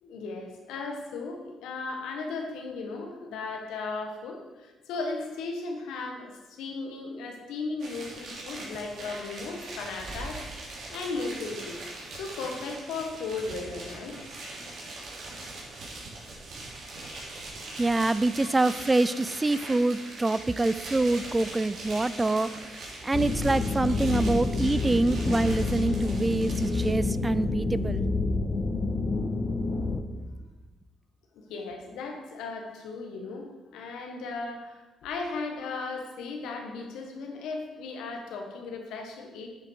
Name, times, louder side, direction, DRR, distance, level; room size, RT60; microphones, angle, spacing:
voice 1, 0.0-11.8 12.2-14.3 18.4-18.5 31.3-39.5, left 3 dB, 90° left, 3 dB, 1.5 m, -36 dB
sound 1, 7.8-26.9, right 2 dB, 70° right, 3.1 m, -41 dB
voice 2, 17.8-22.7 23.0-28.0, right 2 dB, 20° right, 16 dB, 0.3 m, -26 dB
sound 2, 23.1-30.0, left 3 dB, 40° left, 0.8 m, -28 dB
8.9 x 6.9 x 4.7 m, 1.2 s
cardioid pair, 90°, 0 cm